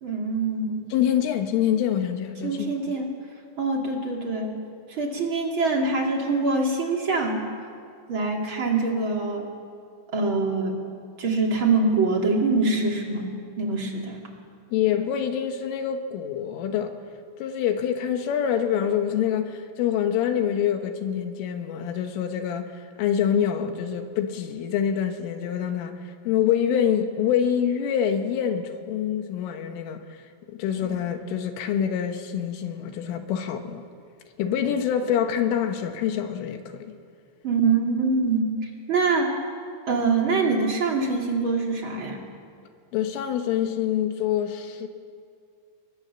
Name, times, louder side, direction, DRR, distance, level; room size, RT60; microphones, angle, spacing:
voice 1, 0.0-0.8 2.4-3.1 3.6-4.6 4.9-7.4 8.1-9.5 10.1-10.8 11.2-14.2 37.4-39.3 39.9-42.2, right 3 dB, 35° right, 2.2 m, -24 dB
voice 2, 0.9-2.7 14.7-17.0 17.4-26.0 26.3-30.0 30.5-33.8 34.4-37.0 42.9-44.9, left 9 dB, 75° left, 3.8 m, -26 dB
30.0 x 23.0 x 7.3 m
omnidirectional pair, 5.9 m